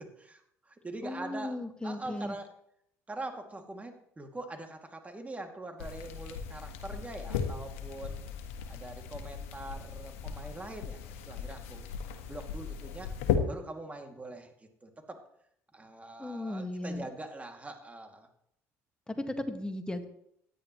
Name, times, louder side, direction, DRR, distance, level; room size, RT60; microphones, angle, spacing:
voice 1, 0.0-2.5 3.1-8.3 8.7-11.9 12.3-13.1 13.5-15.2 15.7-18.3, right 2 dB, 20° right, 4 dB, 2.5 m, -43 dB
voice 2, 1.0-2.4 16.2-17.0 19.1-20.1, left 1 dB, 10° left, 6 dB, 1.8 m, -36 dB
sound 1, 5.8-13.4, left 8 dB, 80° left, 1.4 m, -37 dB
16.5 x 10.5 x 3.2 m, 0.71 s
hypercardioid pair, 65°, 7 cm